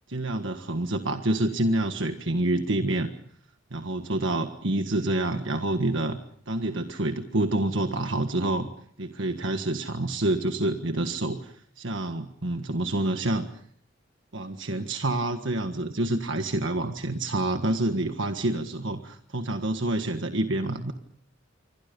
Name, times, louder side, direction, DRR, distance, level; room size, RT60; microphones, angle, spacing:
voice 1, 0.1-3.1 3.7-6.2 6.5-8.7 9.0-13.5 14.3-20.9, right 1 dB, 70° right, 6 dB, 1.6 m, -27 dB
27.5 x 24.5 x 5.4 m, 0.62 s
head